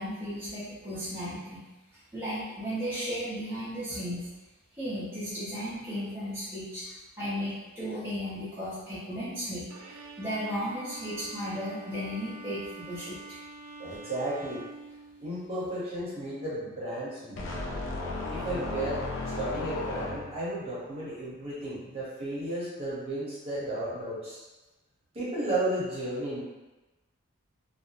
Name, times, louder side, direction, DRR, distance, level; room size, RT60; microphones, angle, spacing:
voice 1, 0.0-1.6 2.1-4.3 4.7-9.6 10.2-13.2, equal, 10° right, -13 dB, 0.6 m, -35 dB
Bowed string instrument, 9.7-15.6, right 3 dB, 90° right, 0.4 m, -46 dB
voice 2, 13.8-14.6 15.2-17.7 18.3-19.0 19.4-24.4 25.1-26.4, right 1 dB, 25° right, -9 dB, 0.9 m, -33 dB
sound 1, 17.4-20.5, left 2 dB, 55° left, 0.4 m, -34 dB
2.3 x 2.0 x 2.8 m, 1.1 s
head